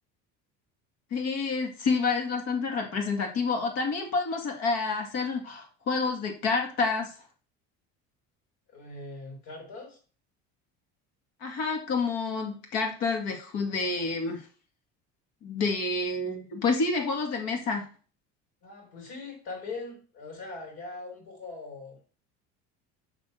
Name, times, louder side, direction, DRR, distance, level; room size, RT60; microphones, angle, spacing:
voice 1, 1.1-7.1 11.4-14.4 15.4-17.9, left 4 dB, 55° left, 2 dB, 2.1 m, -28 dB
voice 2, 8.7-10.0 18.6-22.0, left 3 dB, 85° left, 1 dB, 4.7 m, -41 dB
6.2 x 6.1 x 6.8 m, 0.39 s
cardioid pair, 165°, 30 cm